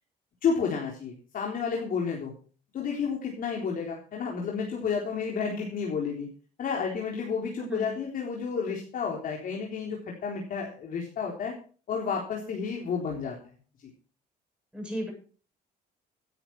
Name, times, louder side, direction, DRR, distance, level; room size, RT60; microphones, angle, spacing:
voice 1, 0.4-2.3 2.7-6.3 6.6-11.5 11.9-13.4, left 6 dB, 55° left, -1 dB, 3.8 m, -31 dB
voice 2, 14.7-15.1, equal, 5° right, -1 dB, 7.8 m, -34 dB
17.0 x 9.8 x 4.7 m, 0.39 s
cardioid pair, 110°, 17 cm